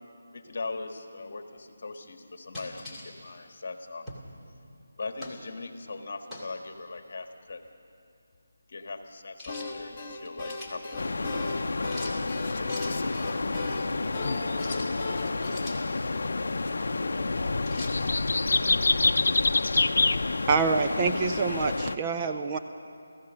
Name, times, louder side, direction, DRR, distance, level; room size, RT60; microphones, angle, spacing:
voice 1, 0.3-4.1 4.5-4.6 4.9-7.6 8.7-11.5, left 3 dB, 50° left, 6 dB, 1.6 m, -40 dB
sound 1, 2.5-3.1 4.1-4.3 5.2-5.4 6.3-6.6 9.4-9.7 10.2-10.7 11.9-12.2 12.7-13.0 14.5-14.9 15.4-15.8 17.7-18.0, left 1 dB, ahead, 2.3 m, -42 dB
sound 2, 9.5-15.5, left 3 dB, 15° left, 1.3 m, -38 dB
sound 3, 11.0-22.0, left 3 dB, 65° left, 0.6 m, -28 dB
voice 2, 12.3-14.8 15.1-18.7, left 3 dB, 30° left, 0 dB, 2.0 m, -43 dB
voice 3, 20.5-22.6, right 5 dB, 20° right, 5 dB, 0.5 m, -26 dB
27.0 x 15.5 x 6.3 m, 2.5 s
figure-of-eight pair, 170°, 0 cm